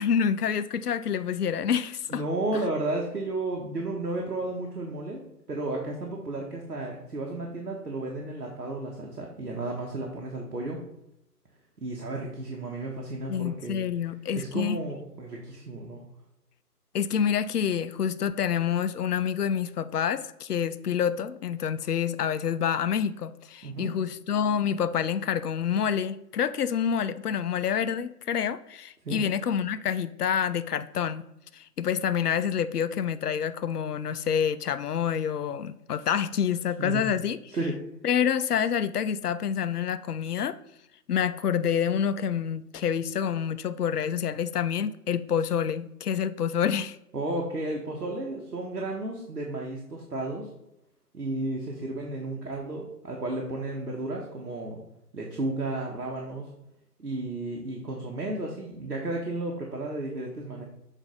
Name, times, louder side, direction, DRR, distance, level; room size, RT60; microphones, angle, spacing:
voice 1, 0.0-2.2 2.5-2.6 13.3-14.8 16.9-31.3 31.5-37.5 38.0-40.6 41.1-47.0, left 8 dB, 75° left, 12 dB, 0.6 m, -27 dB
voice 2, 2.1-5.2 5.5-10.8 11.8-13.8 14.3-16.0 23.6-23.9 29.0-29.2 36.8-37.1 37.5-37.8 47.1-50.5 51.1-54.8 55.1-56.5 57.0-60.6, right 2 dB, 85° right, -1 dB, 1.3 m, -33 dB
7.1 x 2.7 x 5.3 m, 0.81 s
figure-of-eight pair, 165°, 47 cm